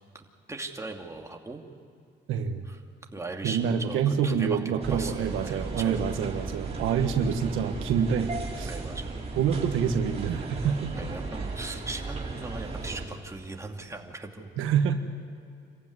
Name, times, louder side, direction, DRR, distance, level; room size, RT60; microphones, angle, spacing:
voice 1, 0.1-1.6 2.6-2.8 3.1-6.1 8.6-9.2 10.9-14.5, right 3 dB, 15° right, 2 dB, 2.6 m, -39 dB
voice 2, 2.3-2.6 3.4-8.3 8.6-8.7 9.4-10.9 14.6-14.9, right 7 dB, 90° right, 6 dB, 1.4 m, -26 dB
sound 1, 4.8-13.0, right 3 dB, 30° right, 5.0 m, -35 dB
26.5 x 15.0 x 9.7 m, 2.3 s
cardioid pair, 90°, 20 cm